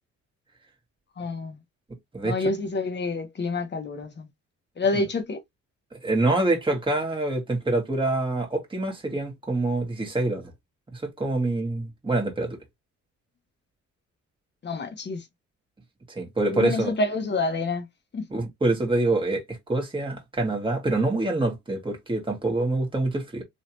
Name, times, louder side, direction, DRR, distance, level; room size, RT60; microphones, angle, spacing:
voice 1, 1.2-1.6 2.2-4.3 4.8-5.4 14.6-15.2 16.5-17.8 18.1-18.2, left 3 dB, 35° left, 1.1 m, -27 dB
voice 2, 2.1-2.5 4.9-5.1 5.9-10.5 10.9-12.6 16.1-16.9 18.3-23.4, right 2 dB, 15° right, 1.6 m, -26 dB
3.3 x 2.7 x 2.9 m
cardioid pair, 90°, 30 cm